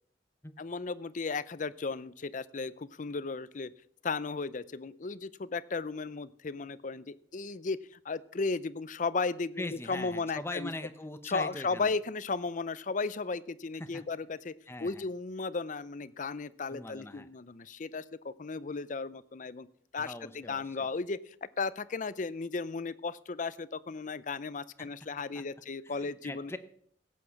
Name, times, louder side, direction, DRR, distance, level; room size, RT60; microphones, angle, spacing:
voice 1, 0.6-3.7 4.0-7.8 8.0-10.7 11.3-14.5 14.8-19.7 19.9-26.5, left 4 dB, 45° left, 17 dB, 0.6 m, -35 dB
voice 2, 9.6-11.9 13.8-14.1 14.7-15.0 16.7-17.3 20.0-20.9 24.8-24.9 25.3-25.4 25.8-26.6, left 2 dB, 15° left, 10 dB, 0.9 m, -41 dB
16.5 x 8.5 x 5.9 m, 0.64 s
head